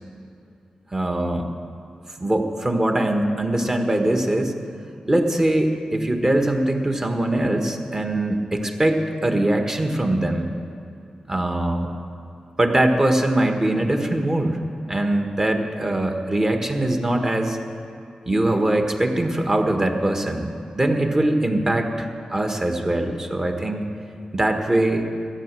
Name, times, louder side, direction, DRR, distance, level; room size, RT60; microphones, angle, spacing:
voice 1, 0.9-1.4 2.2-4.5 5.1-10.5 11.3-11.9 12.6-14.6 14.9-17.6 18.3-20.5 20.7-23.9 24.3-25.1, right 1 dB, 25° right, 4 dB, 1.5 m, -22 dB
13.5 x 9.8 x 7.6 m, 2.6 s
wide cardioid pair, 85°, 2 cm